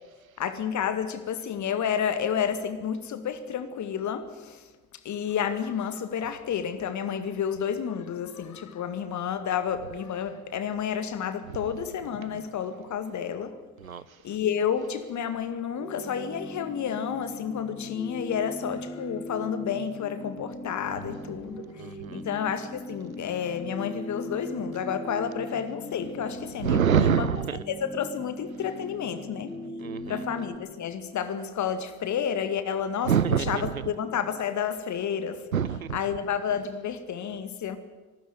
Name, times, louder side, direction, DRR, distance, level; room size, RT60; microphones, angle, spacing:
voice 1, 0.4-13.6 14.2-27.3 27.7-29.5 30.1-33.1 33.5-35.5 35.9-37.8, left 8 dB, 45° left, 2.1 m, -30 dB
voice 2, 13.8-14.2 21.8-22.3 26.6-27.6 29.8-30.3 33.0-33.9 35.5-36.0, right 8 dB, 85° right, 0.6 m, -26 dB
sound 1, 15.7-30.5, left 1 dB, 5° left, 5.2 m, -40 dB
24.0 x 13.0 x 9.4 m
figure-of-eight pair, 50°, 40 cm